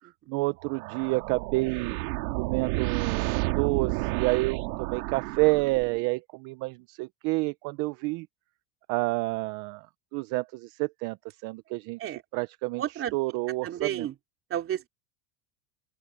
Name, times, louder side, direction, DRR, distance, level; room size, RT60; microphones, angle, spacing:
voice 1, 0.3-2.0 2.3-8.3 8.9-9.9 10.1-12.8 13.1-14.1, right 24 dB, 45° right, 0.6 m, -29 dB
sound 1, 0.6-6.1, right 23 dB, 75° right, 2.8 m, -31 dB
voice 2, 12.8-13.2 13.6-14.1 14.5-14.9, right 11 dB, 30° right, 2.8 m, -31 dB
open air
cardioid pair, 160°, 44 cm